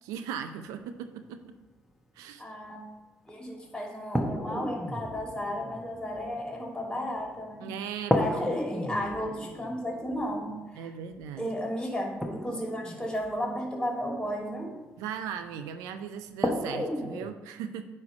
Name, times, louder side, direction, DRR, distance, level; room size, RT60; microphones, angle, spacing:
voice 1, 0.0-1.6 2.2-2.4 7.6-8.1 10.8-11.5 15.0-17.9, right 8 dB, 80° right, 9 dB, 0.4 m, -38 dB
voice 2, 2.4-2.8 3.3-7.7 8.1-10.9 11.4-14.7, equal, 15° left, -1 dB, 2.7 m, -34 dB
sound 1, 3.3-3.4 4.1-7.6 8.1-14.2 15.6-15.7 16.4-17.3, left 1 dB, 5° right, 1.1 m, -33 dB
9.4 x 3.2 x 5.2 m, 1.1 s
hypercardioid pair, 55°, 6 cm